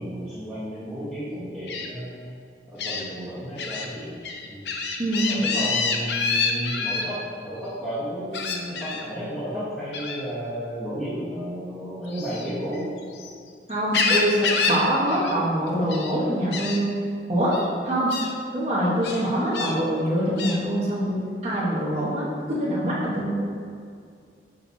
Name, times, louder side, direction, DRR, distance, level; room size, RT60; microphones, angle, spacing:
voice 1, 0.0-2.2 2.7-4.2 4.4-5.0 5.3-13.0, equal, ahead, -12 dB, 1.1 m, -33 dB
Gull seagull, 1.7-1.9 2.8-3.0 3.6-3.9 4.2-7.0 8.3-9.0 9.9-10.2 12.1-13.3 13.7-14.8 15.1-15.4 15.7-16.1 16.5-16.8 17.5-17.7 18.1-18.3 19.0-19.7 20.4-20.6, left 5 dB, 75° left, 0.6 m, -27 dB
voice 2, 5.0-5.4 13.7-17.0 17.3-17.6 17.8-18.1 18.5-23.3, right 1 dB, 40° right, -7 dB, 1.1 m, -24 dB
6.4 x 5.7 x 2.7 m, 2.3 s
head